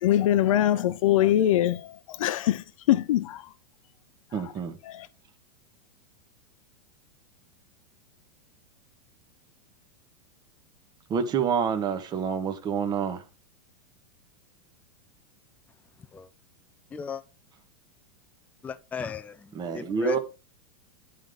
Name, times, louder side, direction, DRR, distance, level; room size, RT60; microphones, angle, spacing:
voice 1, 0.0-3.5 4.3-4.5 4.8-5.1, left 12 dB, 75° left, 0.7 m, -23 dB
voice 2, 4.3-4.8 11.1-13.2 19.5-20.2, right 6 dB, 25° right, 1.2 m, -27 dB
voice 3, 16.9-17.2 18.6-20.2, left 6 dB, 10° left, 0.4 m, -36 dB
11.0 x 3.9 x 5.1 m
supercardioid pair, 140°, 17 cm